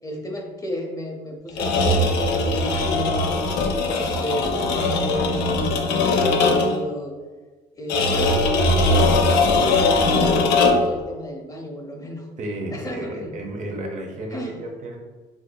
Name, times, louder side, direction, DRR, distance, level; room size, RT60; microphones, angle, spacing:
voice 1, 0.0-7.1 7.7-12.3 12.7-13.4 14.3-14.6, equal, 20° left, 1 dB, 0.5 m, -32 dB
sound 1, 1.5-6.9 7.9-11.0, left 2 dB, 90° left, 0.5 m, -20 dB
voice 2, 12.4-15.0, right 1 dB, 45° right, 1 dB, 0.7 m, -32 dB
4.8 x 2.5 x 2.2 m, 1.3 s
cardioid pair, 110°, 17 cm